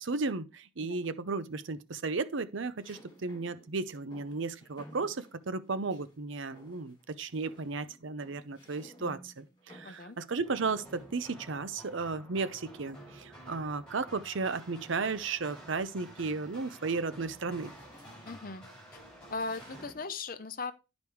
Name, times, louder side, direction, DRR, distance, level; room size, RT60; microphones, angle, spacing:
voice 1, 0.0-17.7, right 4 dB, 70° right, 0.7 m, -34 dB
sound 1, 0.9-1.5 2.8-6.1 6.5-7.1 7.3-11.8 12.9-14.3 14.8-15.0 15.4-20.2, equal, 20° left, 3.2 m, -57 dB
voice 2, 9.8-10.2 18.2-18.6 18.9-19.0 19.3-20.7, left 4 dB, 45° left, 0.8 m, -38 dB
sound 2, 10.4-19.9, right 1 dB, 5° left, 5.9 m, -51 dB
11.0 x 5.2 x 4.7 m
head